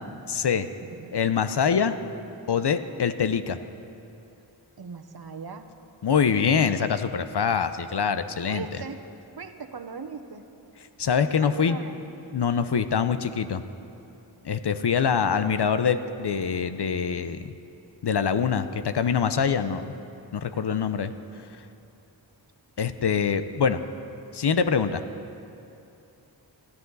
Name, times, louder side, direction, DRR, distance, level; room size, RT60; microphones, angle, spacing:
voice 1, 0.3-0.7 1.1-1.9 2.5-3.6 6.0-8.7 11.0-11.8 12.3-13.6 14.4-17.5 18.0-19.9 20.3-21.1 22.8-23.8 24.3-25.0, left 6 dB, 65° left, 11 dB, 0.8 m, -24 dB
voice 2, 0.8-1.2 4.8-5.7 8.5-9.0 9.4-10.4 11.4-12.0 20.5-20.9, right 5 dB, 55° right, 6 dB, 1.1 m, -39 dB
20.5 x 13.5 x 4.1 m, 2.8 s
cardioid pair, 55°, 44 cm